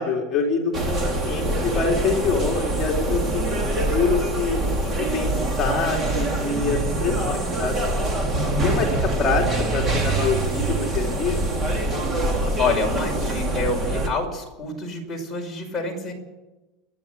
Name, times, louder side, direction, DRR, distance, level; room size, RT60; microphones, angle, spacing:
voice 1, 0.0-5.3 5.6-7.8 8.6-9.5 9.7-11.4, left 4 dB, 30° left, -1 dB, 3.5 m, -25 dB
sound 1, 0.7-14.1, right 2 dB, 25° right, 3.4 m, -24 dB
voice 2, 12.6-16.1, left 3 dB, 10° left, -2 dB, 5.6 m, -27 dB
30.0 x 10.5 x 8.4 m, 1.1 s
supercardioid pair, 150°, 0 cm